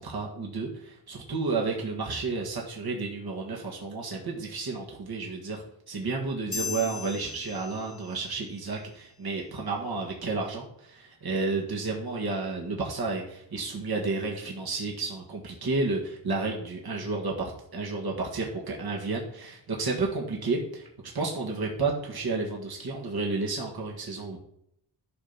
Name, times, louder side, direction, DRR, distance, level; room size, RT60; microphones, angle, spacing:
voice 1, 0.0-20.9 21.1-24.4, right 3 dB, 55° right, -1 dB, 1.9 m, -31 dB
sound 1, 6.5-8.4, left 5 dB, 30° left, 0.7 m, -37 dB
11.5 x 4.1 x 5.9 m, 0.75 s
wide cardioid pair, 80°, 46 cm